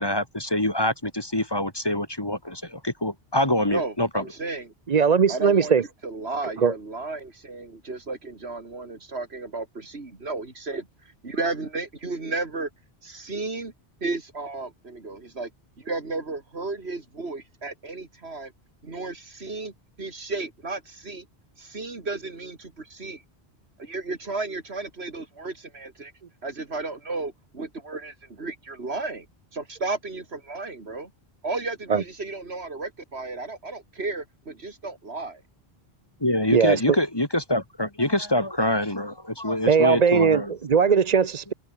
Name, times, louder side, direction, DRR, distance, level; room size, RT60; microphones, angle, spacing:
voice 1, 0.0-4.2 36.2-40.5, left 1 dB, 25° left, 1.9 m, -25 dB
voice 2, 3.6-4.7 5.3-5.7 6.0-12.7 13.0-13.7 14.0-15.5 15.8-18.5 18.8-21.3 21.6-23.2 23.8-26.1 26.4-29.3 29.5-31.1 31.4-35.4, right 3 dB, 75° right, 3.1 m, -33 dB
voice 3, 4.9-5.8 6.6-6.7 31.9-32.0 36.5-37.0 39.7-41.5, right 6 dB, 45° right, 0.8 m, -19 dB
omnidirectional pair, 1.1 m